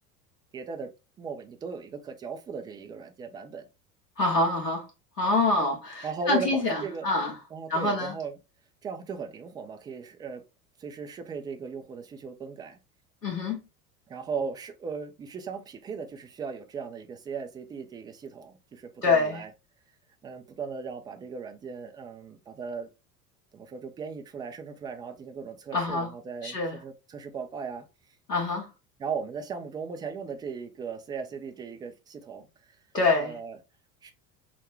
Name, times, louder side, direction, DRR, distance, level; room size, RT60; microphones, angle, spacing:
voice 1, 0.5-0.9 1.2-3.7 6.0-7.1 7.5-8.4 8.8-10.4 10.8-12.8 14.1-19.5 20.2-22.9 23.5-27.9 29.0-32.4 33.2-33.6 34.0-34.1, right 5 dB, 10° right, 0.3 m, -37 dB
voice 2, 4.2-4.9 5.2-7.3 7.7-8.2 13.2-13.6 19.0-19.4 25.7-26.1 26.4-26.8 28.3-28.7 32.9-33.4, left 3 dB, 85° left, 1.5 m, -26 dB
5.9 x 2.1 x 3.2 m
figure-of-eight pair, 75°, 47 cm